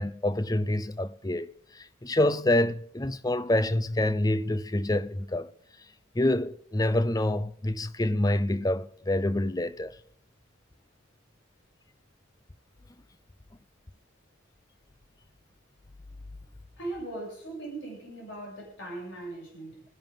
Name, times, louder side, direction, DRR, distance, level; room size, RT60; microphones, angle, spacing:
voice 1, 0.0-1.5 1.8-5.5 6.2-9.9, left 1 dB, 20° left, 0.5 m, -27 dB
voice 2, 16.8-19.8, right 2 dB, 65° left, 7.4 m, -39 dB
26.5 x 10.5 x 3.7 m
head